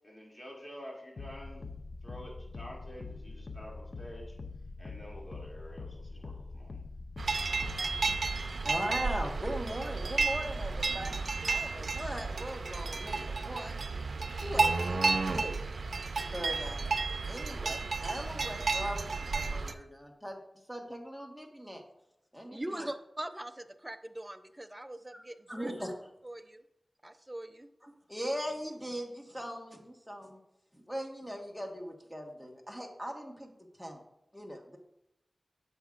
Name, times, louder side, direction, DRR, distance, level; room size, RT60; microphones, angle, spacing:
voice 1, 0.0-1.7 2.0-4.3 4.8-6.8, equal, 30° left, -3 dB, 2.6 m, -48 dB
sound 1, 1.2-8.5, left 3 dB, 65° left, 0.5 m, -44 dB
sound 2, 7.2-19.7, right 4 dB, 85° right, 0.5 m, -32 dB
voice 2, 8.6-11.2 11.5-13.8 14.4-15.7 16.2-16.9 17.3-20.4 20.7-21.8 22.3-22.9 25.5-25.9 27.8-30.4 30.7-33.5 33.8-34.0 34.3-34.8, equal, ahead, 2 dB, 1.4 m, -39 dB
voice 3, 22.5-25.7 26.2-26.6 27.0-27.7, right 1 dB, 15° right, 9 dB, 0.5 m, -42 dB
10.0 x 7.1 x 2.5 m, 0.84 s
wide cardioid pair, 75°, 0 cm